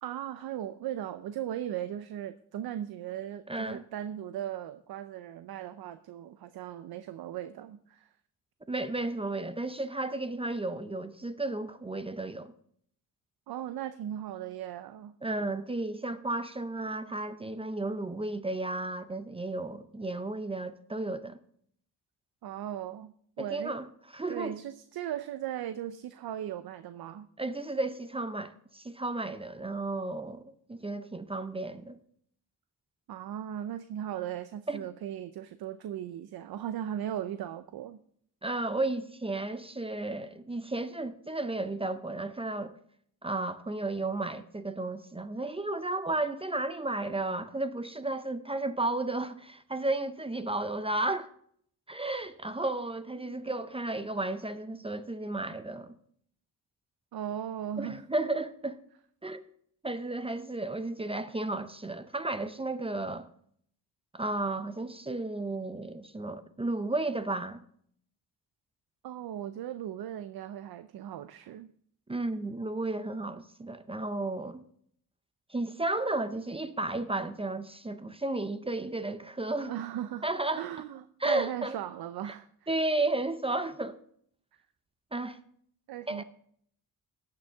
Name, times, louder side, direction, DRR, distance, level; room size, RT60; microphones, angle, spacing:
voice 1, 0.0-8.1 13.5-15.1 22.4-23.8 24.3-27.3 33.1-38.0 53.2-53.4 57.1-58.0 69.0-71.7 79.6-80.3 80.5-82.5 84.5-84.6 85.9-86.2, right 11 dB, 65° right, 0.6 m, -38 dB
voice 2, 3.5-3.8 8.7-12.5 15.2-21.4 23.4-23.9 24.1-24.5 27.4-32.0 34.7-34.8 38.4-42.8 43.2-51.3 51.9-55.9 57.8-58.8 59.2-59.4 59.8-63.3 64.1-67.6 72.1-74.6 75.5-79.7 80.2-80.6 81.2-81.8 82.7-84.0 85.1-85.4 86.1-86.2, right 2 dB, 15° right, 0.5 m, -33 dB
17.5 x 6.7 x 3.5 m
cardioid pair, 110°, 39 cm